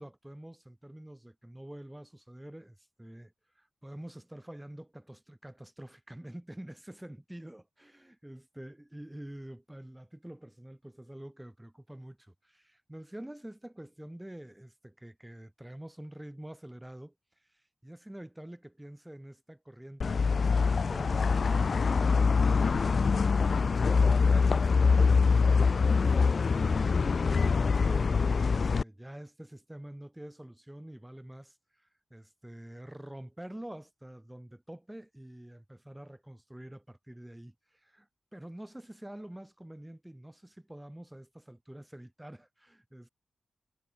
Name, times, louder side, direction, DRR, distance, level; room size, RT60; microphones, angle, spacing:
voice 1, 0.0-17.1 17.8-26.5 26.7-43.1, right 1 dB, 10° right, 5.3 m, -47 dB
sound 1, 20.0-28.8, left 5 dB, 60° left, 0.5 m, -24 dB
cardioid pair, 75°, 0 cm